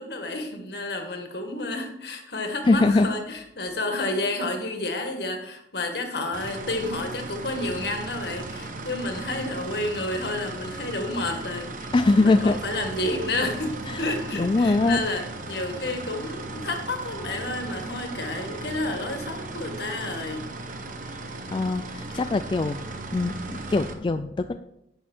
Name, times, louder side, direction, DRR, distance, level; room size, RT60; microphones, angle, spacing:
voice 1, 0.0-20.5, left 2 dB, 60° left, 4 dB, 1.8 m, -30 dB
voice 2, 2.7-3.1 11.9-12.6 13.9-14.0 14.3-15.0 21.5-24.6, left 3 dB, 25° left, 9 dB, 0.3 m, -22 dB
sound 1, 6.3-23.9, right 2 dB, 45° right, 1.2 m, -37 dB
Brass instrument, 12.4-20.1, right 5 dB, 75° right, 4.0 m, -48 dB
10.5 x 8.3 x 4.5 m, 0.80 s
head